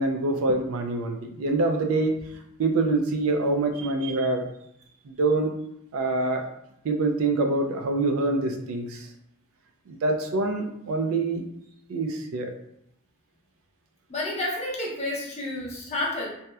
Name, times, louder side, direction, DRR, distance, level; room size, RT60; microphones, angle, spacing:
voice 1, 0.0-2.1 2.6-4.5 5.1-5.5 5.9-6.4 6.8-9.1 9.9-11.4 11.9-12.5, right 2 dB, 75° right, 4 dB, 0.4 m, -25 dB
voice 2, 14.1-16.3, left 1 dB, 30° left, -4 dB, 0.6 m, -30 dB
2.8 x 2.0 x 2.2 m, 0.77 s
head